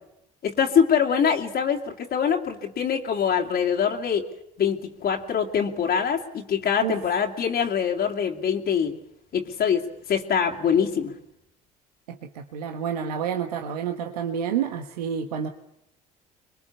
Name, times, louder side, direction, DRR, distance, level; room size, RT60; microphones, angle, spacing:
voice 1, 0.4-4.2 4.6-8.9 9.3-11.1, left 7 dB, 50° left, 1 dB, 2.5 m, -24 dB
voice 2, 12.1-15.5, right 8 dB, 85° right, 6 dB, 1.4 m, -29 dB
25.5 x 22.5 x 7.1 m, 0.84 s
hypercardioid pair, 60°, 20 cm